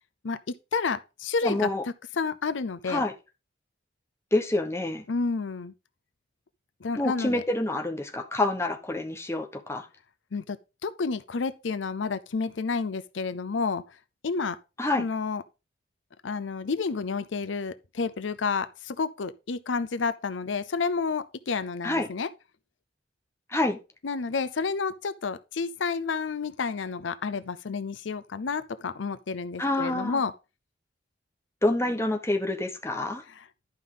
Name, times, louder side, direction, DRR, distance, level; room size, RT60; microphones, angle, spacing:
voice 1, 0.2-1.7 2.1-3.0 5.1-5.7 6.8-7.4 10.3-10.6 10.8-14.0 14.2-14.6 15.0-15.4 16.2-22.3 24.0-30.3 33.3-33.5, left 4 dB, 85° left, 0.6 m, -30 dB
voice 2, 1.4-1.8 2.9-3.1 4.3-5.0 7.0-9.9 14.8-15.1 21.8-22.1 23.5-23.8 29.6-30.2 31.6-33.2, left 2 dB, 15° left, 1.1 m, -27 dB
11.0 x 5.4 x 3.8 m
head